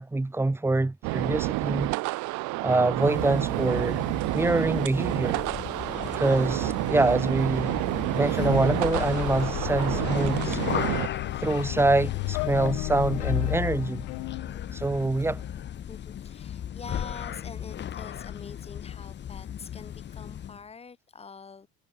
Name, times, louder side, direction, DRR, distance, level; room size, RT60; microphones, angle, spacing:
voice 1, 0.0-1.9 2.6-4.0 4.3-5.4 6.2-7.8 8.1-10.6 11.4-14.1 14.7-15.4, right 2 dB, 5° right, 2.1 m, -25 dB
sound 1, 1.0-11.1, right 23 dB, 65° right, 1.3 m, -29 dB
sound 2, 2.9-20.6, left 10 dB, 35° left, 2.0 m, -37 dB
sound 3, 8.4-15.7, left 40 dB or more, 90° left, 2.5 m, -33 dB
voice 2, 15.9-21.7, left 5 dB, 20° left, 3.8 m, -45 dB
cardioid pair, 140°, 31 cm